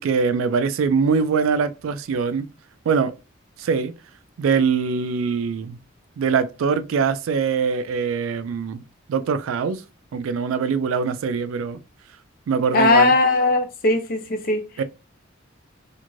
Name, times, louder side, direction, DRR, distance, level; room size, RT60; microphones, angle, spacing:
voice 1, 0.0-2.5 2.9-3.1 3.6-3.9 4.4-5.8 6.2-8.8 9.1-9.8 10.1-11.8 12.5-13.1 14.8-14.9, right 5 dB, 85° right, 0.3 m, -22 dB
voice 2, 12.7-14.7, left 3 dB, 45° left, 0.5 m, -18 dB
2.5 x 2.4 x 3.0 m
head